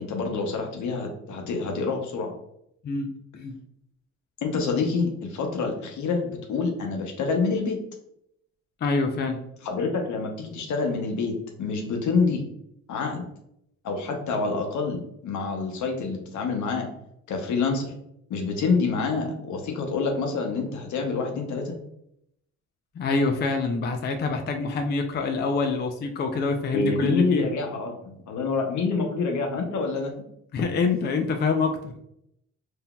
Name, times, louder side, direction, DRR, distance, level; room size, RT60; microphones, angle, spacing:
voice 1, 0.0-2.3 4.4-7.8 9.6-11.3 11.6-12.4 12.9-13.2 13.8-16.9 17.3-17.9 18.3-21.8 26.7-30.1, left 4 dB, 75° left, 3 dB, 0.8 m, -27 dB
voice 2, 2.8-3.6 8.8-9.4 23.0-27.5 30.5-31.9, left 4 dB, 35° left, 5 dB, 0.4 m, -26 dB
3.8 x 2.7 x 2.2 m, 0.76 s
cardioid pair, 90°, 30 cm